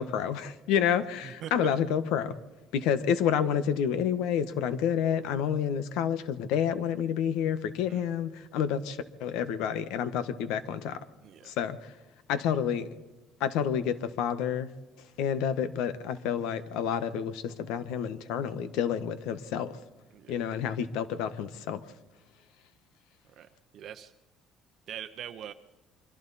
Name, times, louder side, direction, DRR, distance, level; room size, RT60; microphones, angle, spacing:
voice 1, 0.0-2.4 2.7-11.0 11.4-11.9 12.3-12.9 13.4-14.7 15.2-19.8 20.3-21.8, left 8 dB, 85° left, 12 dB, 1.3 m, -29 dB
voice 2, 23.7-24.1 24.9-25.5, right 10 dB, 45° right, 7 dB, 0.8 m, -42 dB
26.0 x 24.0 x 4.2 m, 1.1 s
cardioid pair, 170°, 0 cm